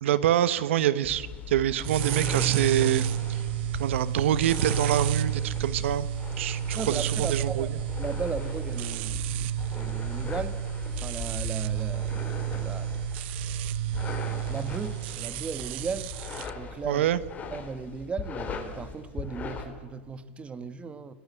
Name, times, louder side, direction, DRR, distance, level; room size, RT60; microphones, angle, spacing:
voice 1, 0.0-3.4 3.8-6.1 6.4-7.7 16.9-17.2, right 11 dB, 75° right, 15 dB, 1.2 m, -26 dB
sound 1, 1.0-19.6, left 5 dB, 25° left, 4.0 m, -39 dB
sound 2, 1.8-16.5, right 10 dB, 60° right, 0.7 m, -31 dB
voice 2, 6.7-7.7 8.0-10.6 11.0-13.0 14.5-16.1 16.5-17.1 17.5-21.1, right 5 dB, 15° right, 13 dB, 1.4 m, -37 dB
26.0 x 19.0 x 8.5 m, 1.4 s
supercardioid pair, 130°, 7 cm